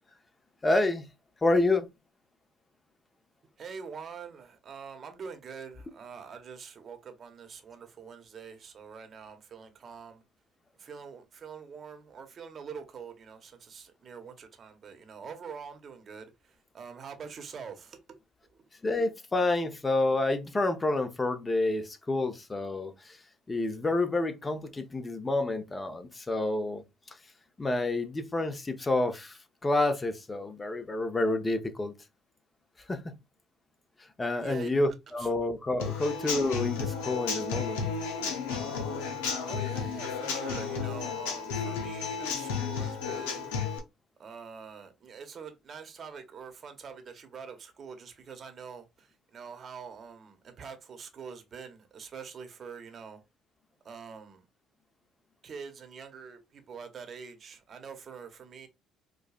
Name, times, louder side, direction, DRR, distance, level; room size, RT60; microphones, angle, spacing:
voice 1, 0.6-1.0 1.4-1.9 18.8-23.2 23.5-26.8 27.6-31.9 32.9-33.0 34.2-37.9, left 2 dB, 25° left, 0.8 m, -29 dB
voice 2, 3.6-10.2 10.8-18.2 34.4-34.7 35.1-35.3 39.4-43.5 44.2-53.2 53.8-54.4 55.4-58.7, right 6 dB, 50° right, 0.9 m, -45 dB
Human voice / Acoustic guitar / Drum, 35.8-43.8, left 6 dB, 85° left, 0.7 m, -33 dB
4.8 x 2.2 x 2.4 m
hypercardioid pair, 60°, 0 cm